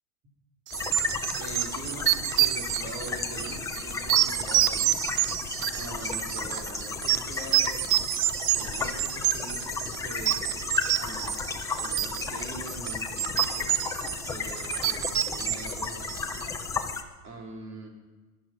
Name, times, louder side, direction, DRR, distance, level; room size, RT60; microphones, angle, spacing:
sound 1, 0.7-17.0, left 5 dB, 10° left, 0.5 m, -34 dB
sound 2, 0.7-16.5, right 15 dB, 70° right, 0.6 m, -28 dB
voice 1, 1.4-5.4 5.7-8.1 8.6-10.4 11.0-13.8 14.3-16.2 17.2-17.9, right 2 dB, 40° right, 1 dB, 3.6 m, -43 dB
18.5 x 12.0 x 5.8 m, 1.3 s
supercardioid pair, 145°, 43 cm